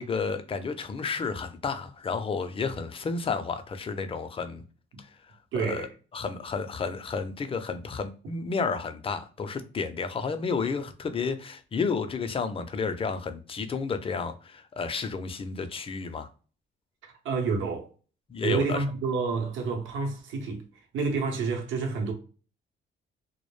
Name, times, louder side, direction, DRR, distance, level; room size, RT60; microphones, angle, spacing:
voice 1, 0.0-4.6 5.0-5.1 5.5-5.9 6.1-16.3 18.3-18.8, left 5 dB, 30° left, 0.4 m, -31 dB
voice 2, 5.5-5.9 17.0-17.9 18.4-20.6 20.9-22.1, right 4 dB, 80° right, 0.8 m, -29 dB
2.1 x 2.0 x 3.1 m
cardioid pair, 90°, 20 cm